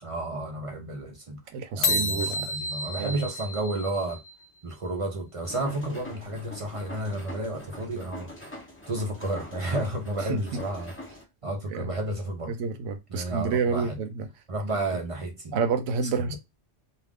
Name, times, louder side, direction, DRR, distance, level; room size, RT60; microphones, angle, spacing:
voice 1, 0.0-1.4 1.7-4.2 4.6-8.3 8.9-10.9 11.4-12.5 13.1-14.0 14.5-15.6 16.2-16.4, right 2 dB, 45° right, 0.4 m, -31 dB
voice 2, 1.5-2.5 3.0-3.2 10.3-10.6 11.7-11.9 12.5-14.3 15.5-16.4, right 5 dB, 80° right, 0.9 m, -29 dB
sound 1, 1.8-4.5, left 2 dB, 55° left, 0.7 m, -30 dB
sound 2, 5.4-11.2, left 1 dB, 10° left, 0.7 m, -43 dB
2.4 x 2.4 x 3.4 m
omnidirectional pair, 1.3 m